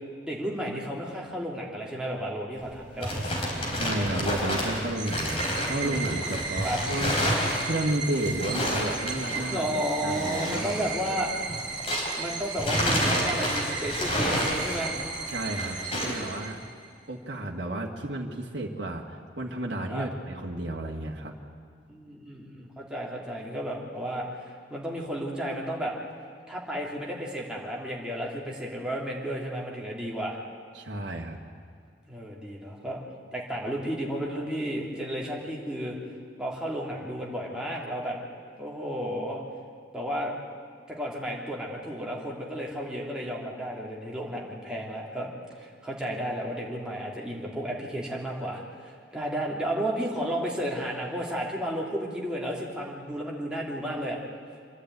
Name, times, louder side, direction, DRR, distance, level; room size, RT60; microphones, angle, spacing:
voice 1, 0.2-3.1 6.6-6.8 9.5-11.3 12.2-15.0 19.9-20.1 21.9-25.9 26.5-30.4 32.1-33.0 33.3-36.0 36.4-38.2 38.6-39.4 39.9-40.4 40.9-45.3 45.6-54.2, equal, 5° right, -4 dB, 3.0 m, -33 dB
sound 1, 2.6-12.2 12.5-16.3, equal, 30° left, 4.0 m, -30 dB
voice 2, 3.7-9.7 10.0-10.9 15.3-16.6 17.1-21.3 30.7-31.4, right 1 dB, 70° right, -2 dB, 1.8 m, -32 dB
sound 2, 4.9-16.9, right 4 dB, 25° right, 4.1 m, -35 dB
26.5 x 11.5 x 9.4 m, 2.2 s
head